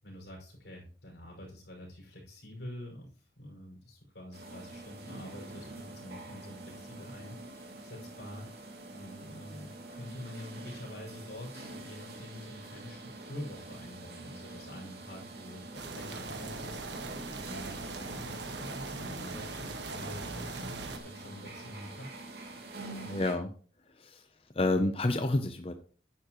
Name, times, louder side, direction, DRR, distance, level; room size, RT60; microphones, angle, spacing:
voice 1, 0.0-22.1, left 1 dB, 85° left, -1 dB, 5.6 m, -47 dB
sound 1, 4.3-23.3, right 2 dB, 65° right, 2.6 m, -46 dB
sound 2, 15.7-21.0, right 3 dB, 85° right, 1.5 m, -40 dB
voice 2, 23.1-23.5 24.0-24.2 24.6-25.7, left 2 dB, 30° left, 7 dB, 0.6 m, -29 dB
11.0 x 9.7 x 3.0 m, 0.42 s
head